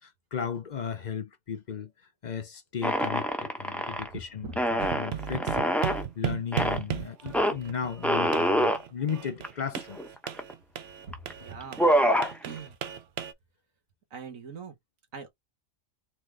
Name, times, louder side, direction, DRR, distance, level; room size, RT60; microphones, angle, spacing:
voice 1, 0.0-1.9 2.2-5.8 6.2-10.0, left 7 dB, 50° left, 0.5 m, -35 dB
sound 1, 2.8-4.1 4.5-6.0 6.5-6.8 7.3-7.5 8.0-8.8 9.4-9.5 9.8-10.5 11.1-11.3 11.6-12.3, equal, ahead, 0.6 m, -25 dB
sound 2, 4.8-13.3, right 10 dB, 60° right, 0.8 m, -35 dB
voice 2, 11.1-11.8 12.4-12.8 14.1-14.8 15.1-15.3, right 5 dB, 75° right, 1.8 m, -41 dB
4.1 x 3.6 x 3.3 m
omnidirectional pair, 1.4 m